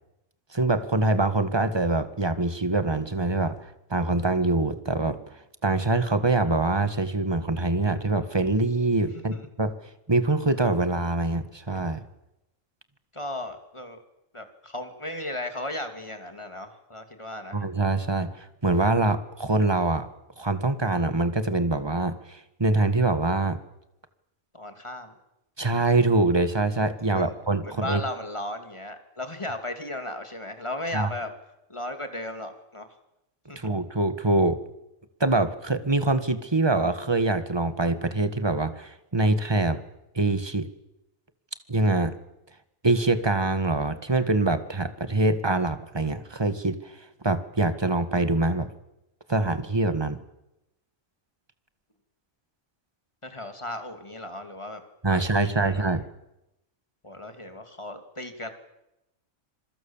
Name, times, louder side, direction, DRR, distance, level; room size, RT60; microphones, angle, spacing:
voice 1, 0.5-3.6 3.9-5.2 5.6-9.7 10.1-12.0 17.5-20.1 20.4-23.6 25.6-28.0 30.9-31.1 33.5-34.6 35.2-39.8 40.1-40.7 41.7-42.1 42.8-46.9 47.2-48.7 49.3-50.2 55.0-56.0, right 2 dB, 20° right, 11 dB, 1.7 m, -24 dB
voice 2, 9.0-9.5 13.1-14.0 14.3-17.7 24.5-25.1 27.1-27.3 27.6-31.3 31.7-33.0 33.5-33.7 53.2-54.8 55.1-55.9 57.0-58.5, left 1 dB, 20° left, 7 dB, 2.7 m, -36 dB
27.0 x 24.0 x 7.3 m, 0.89 s
omnidirectional pair, 1.4 m